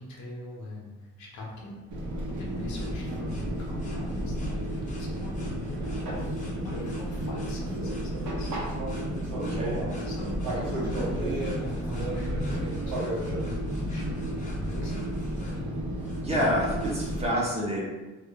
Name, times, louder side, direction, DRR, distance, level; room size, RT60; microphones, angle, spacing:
voice 1, 0.0-1.8 2.3-4.6 4.9-8.5 10.0-15.2, left 1 dB, 65° left, -2 dB, 0.7 m, -41 dB
sound 1, 1.5-17.2, equal, 25° left, 0.6 m, -45 dB
Fixed-wing aircraft airplane, 1.9-17.3, right 1 dB, 75° right, 0.7 m, -32 dB
voice 2, 9.3-9.9 16.2-17.8, equal, 20° right, -5 dB, 0.7 m, -28 dB
2.2 x 2.0 x 2.7 m, 1.1 s
cardioid pair, 90°, 30 cm